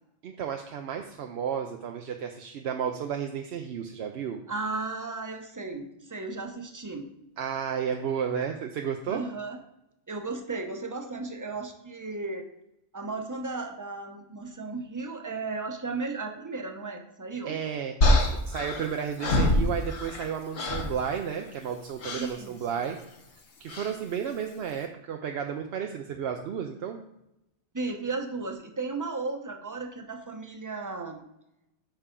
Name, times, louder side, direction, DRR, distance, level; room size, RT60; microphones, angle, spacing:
voice 1, 0.2-4.4 7.4-9.2 17.4-23.0 23.6-27.0, right 7 dB, 65° right, 4 dB, 0.8 m, -32 dB
voice 2, 4.5-7.1 9.1-9.6 10.1-12.5 12.9-17.6 22.2-22.6 27.7-31.3, right 3 dB, 20° right, 4 dB, 0.8 m, -35 dB
sound 1, 18.0-20.3 20.5-21.0 22.0-22.3 23.7-24.0, left 1 dB, 65° left, 1.3 m, -25 dB
8.9 x 5.6 x 3.7 m, 0.85 s
omnidirectional pair, 1.2 m